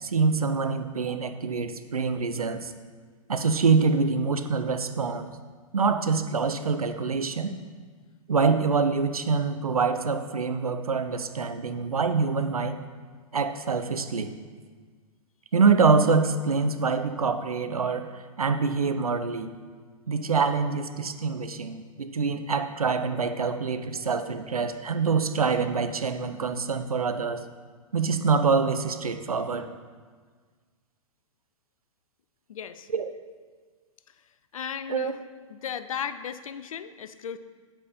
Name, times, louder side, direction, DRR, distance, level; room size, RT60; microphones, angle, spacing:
voice 1, 0.0-2.7 3.3-5.3 5.7-7.6 8.3-12.8 13.3-14.3 15.5-19.5 20.1-27.4 27.9-29.7 32.9-33.1 34.9-35.1, right 5 dB, 85° right, 9 dB, 0.7 m, -25 dB
voice 2, 32.5-32.9 34.5-35.2 35.5-37.4, left 8 dB, 70° left, 13 dB, 0.6 m, -35 dB
8.4 x 7.7 x 4.3 m, 1.5 s
figure-of-eight pair, 115°, 18 cm